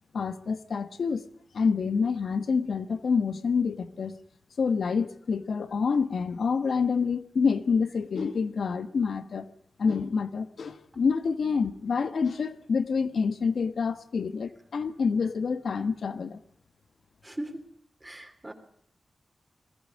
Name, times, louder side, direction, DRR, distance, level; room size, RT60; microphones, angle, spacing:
voice 1, 0.1-1.2 1.5-4.2 4.6-9.5 9.8-16.4, left 5 dB, 75° left, 1.2 m, -27 dB
voice 2, 17.2-17.6 18.0-18.5, right 1 dB, 20° right, 3.2 m, -38 dB
20.5 x 14.5 x 9.5 m
cardioid pair, 65°, 0 cm